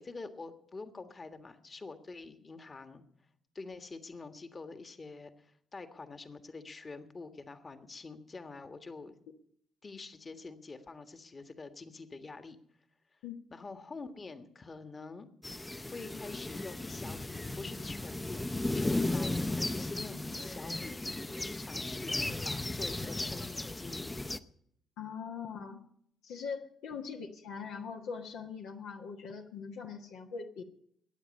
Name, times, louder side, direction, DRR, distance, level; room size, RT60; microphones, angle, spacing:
voice 1, 0.0-3.0 3.5-9.2 9.8-12.6 13.5-15.3 15.9-21.0 21.4-22.2 22.4-24.2 26.9-27.0, left 3 dB, 35° left, 8 dB, 1.6 m, -46 dB
sound 1, 15.4-24.4, left 2 dB, 15° left, 0.9 m, -35 dB
voice 2, 25.0-25.8 26.2-30.6, left 6 dB, 70° left, 1 dB, 1.3 m, -41 dB
21.5 x 9.4 x 5.4 m, 0.68 s
hypercardioid pair, 45°, 0 cm